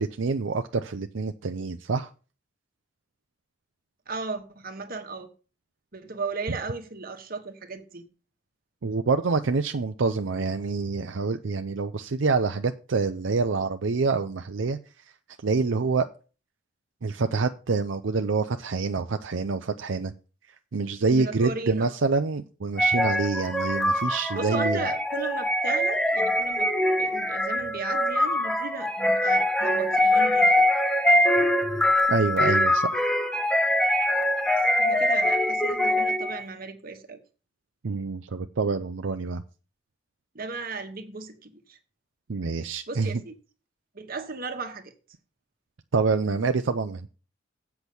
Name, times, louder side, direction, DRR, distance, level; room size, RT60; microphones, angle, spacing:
voice 1, 0.0-2.1 8.8-14.8 15.4-16.1 17.0-20.1 20.7-24.8 32.1-32.9 37.8-39.4 42.3-43.2 45.9-47.0, right 4 dB, 80° right, 0.6 m, -26 dB
voice 2, 4.1-5.3 5.9-8.0 21.1-21.9 24.3-26.7 27.0-30.7 34.6-37.2 40.3-41.8 42.6-43.3 43.9-44.9, right 3 dB, 50° right, 1.4 m, -36 dB
sound 1, 22.8-36.4, left 1 dB, 5° left, 0.9 m, -23 dB
8.2 x 5.9 x 6.9 m
head